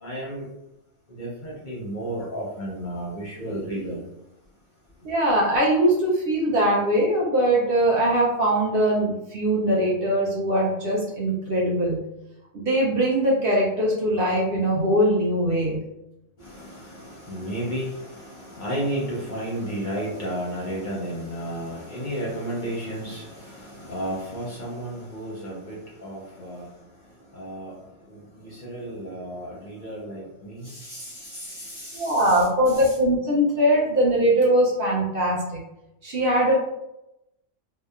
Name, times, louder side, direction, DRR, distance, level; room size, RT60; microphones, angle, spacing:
voice 1, 0.0-0.5 1.2-4.0 16.4-26.7 27.3-27.7 28.1-32.9, right 1 dB, 50° left, -5 dB, 0.6 m, -33 dB
voice 2, 5.0-12.0 12.5-15.8 31.9-35.6 36.0-36.5, right 1 dB, 60° right, -4 dB, 0.7 m, -21 dB
2.7 x 2.1 x 2.3 m, 0.89 s
omnidirectional pair, 1.3 m